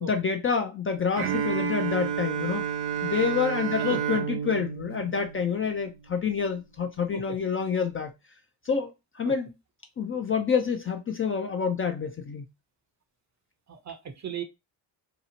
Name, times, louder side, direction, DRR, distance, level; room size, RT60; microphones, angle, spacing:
voice 1, 0.0-2.7 3.0-8.1 8.6-9.5 10.0-12.5, left 6 dB, 30° left, 0.4 m, -28 dB
Bowed string instrument, 1.2-6.0, right 8 dB, 85° right, 0.7 m, -30 dB
voice 2, 3.8-4.2 7.1-7.4 9.2-9.3 13.7-14.4, right 7 dB, 35° right, 0.6 m, -37 dB
2.8 x 2.0 x 2.8 m
supercardioid pair, 60°, 47 cm